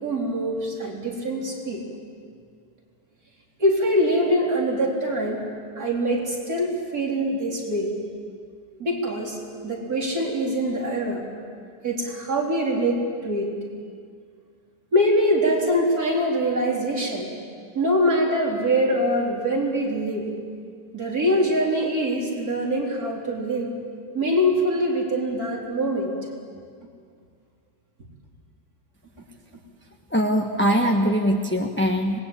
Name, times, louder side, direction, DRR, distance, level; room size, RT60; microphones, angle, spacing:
voice 1, 0.0-1.9 3.6-5.4 5.8-7.9 8.8-9.4 9.6-11.2 11.8-13.5 14.9-17.3 17.7-20.3 20.9-23.7 24.1-26.3, equal, 60° right, -2 dB, 4.5 m, -23 dB
voice 2, 30.1-32.2, equal, 10° left, 1 dB, 1.2 m, -22 dB
26.0 x 20.5 x 8.6 m, 2.2 s
omnidirectional pair, 1.8 m